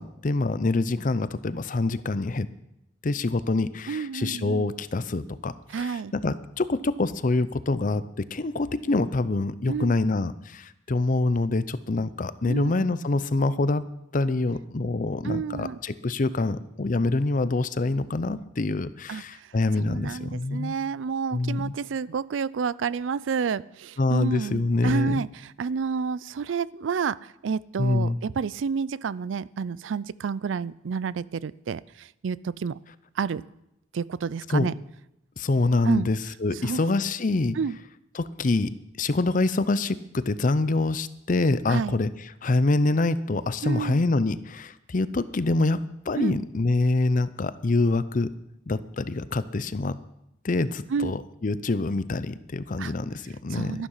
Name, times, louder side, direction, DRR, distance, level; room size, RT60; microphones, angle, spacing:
voice 1, 0.0-2.5 3.0-13.8 14.1-20.7 21.3-21.7 24.0-25.2 27.8-28.2 34.5-34.7 35.4-37.6 38.1-38.7 39.0-42.1 42.4-48.3 48.7-50.0 50.4-53.8, left 2 dB, 45° left, 15 dB, 0.6 m, -25 dB
voice 2, 3.9-4.7 5.7-6.1 9.7-9.9 12.4-12.7 15.2-15.8 19.1-19.2 19.8-25.3 25.6-32.8 33.2-33.4 33.9-34.7 35.9-36.1 36.6-36.8 37.6-37.8 41.7-41.9 43.6-44.0 46.2-46.4 50.9-51.1 52.8-52.9 53.5-53.9, right 6 dB, 80° right, 20 dB, 0.4 m, -30 dB
12.5 x 11.5 x 5.6 m, 0.84 s
head